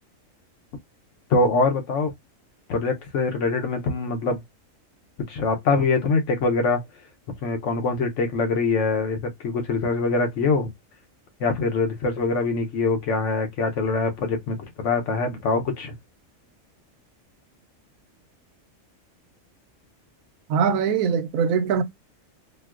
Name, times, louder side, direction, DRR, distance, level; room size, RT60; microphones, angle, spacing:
voice 1, 1.3-2.1 2.7-4.4 5.3-6.8 7.4-10.7 11.4-15.9, left 3 dB, 65° left, 1.0 m, -24 dB
voice 2, 20.5-21.8, right 6 dB, 85° right, 1.0 m, -22 dB
4.3 x 2.1 x 2.3 m
omnidirectional pair, 1.4 m